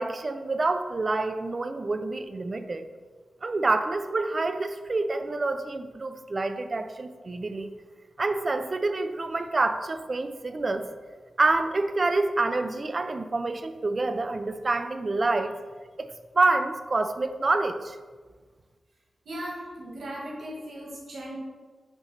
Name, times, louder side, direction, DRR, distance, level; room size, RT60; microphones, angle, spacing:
voice 1, 0.0-2.9 3.4-7.7 8.2-10.9 11.4-15.5 16.0-18.0, right 3 dB, 35° right, 9 dB, 0.4 m, -27 dB
voice 2, 19.3-21.4, equal, 80° right, -4 dB, 1.8 m, -37 dB
6.3 x 3.1 x 5.6 m, 1.4 s
wide cardioid pair, 165°, 0 cm